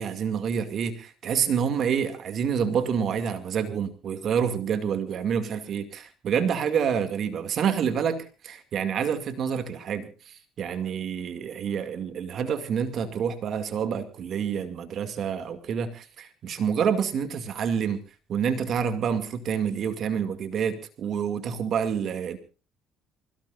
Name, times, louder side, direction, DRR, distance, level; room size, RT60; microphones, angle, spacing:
voice 1, 0.0-18.0 18.3-22.4, right 7 dB, 55° right, 8 dB, 2.2 m, -28 dB
27.5 x 17.5 x 2.5 m, 0.34 s
cardioid pair, 100°, 0 cm